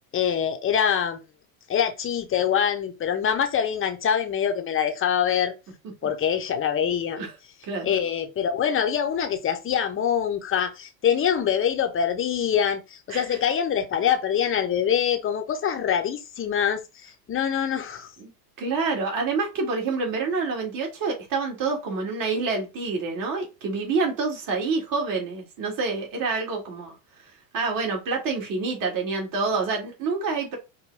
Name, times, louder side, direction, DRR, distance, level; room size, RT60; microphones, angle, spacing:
voice 1, 0.1-1.2 1.7-5.5 6.0-7.2 7.8-18.1, left 8 dB, 25° left, 0.8 m, -24 dB
voice 2, 18.6-27.0 27.5-30.6, right 4 dB, 40° right, 2.1 m, -27 dB
5.2 x 2.2 x 3.3 m
hypercardioid pair, 100°, 49 cm